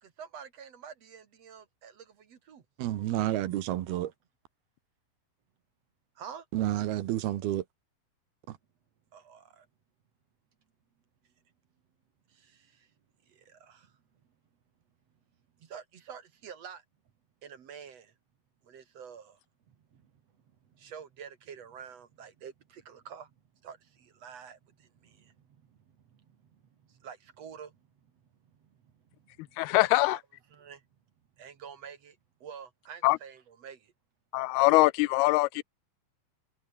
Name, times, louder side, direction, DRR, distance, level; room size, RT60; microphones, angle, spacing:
voice 1, 0.0-2.6 6.2-6.5 9.1-9.7 12.3-12.9 13.3-13.9 15.6-16.8 17.4-18.1 18.6-19.4 19.7-20.2 20.6-23.3 23.6-27.8 28.1-28.2 28.6-30.2 30.5-30.8 31.4-33.9, right 7 dB, 50° right, 2.6 m, -48 dB
voice 2, 2.8-4.1 6.5-7.6 8.5-8.6, right 13 dB, 80° right, 3.3 m, -30 dB
voice 3, 29.6-30.2 33.0-33.2 34.3-35.6, left 22 dB, 85° left, 2.5 m, -23 dB
omnidirectional pair, 4.5 m